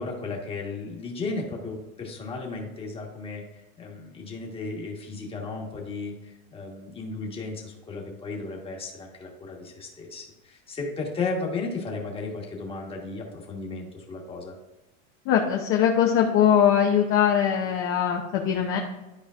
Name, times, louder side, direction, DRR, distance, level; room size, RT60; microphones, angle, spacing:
voice 1, 0.0-14.5, left 3 dB, 15° left, -1 dB, 1.4 m, -34 dB
voice 2, 15.2-18.8, left 9 dB, 35° left, 1 dB, 0.8 m, -21 dB
12.5 x 4.9 x 2.5 m, 1.1 s
supercardioid pair, 160°, 41 cm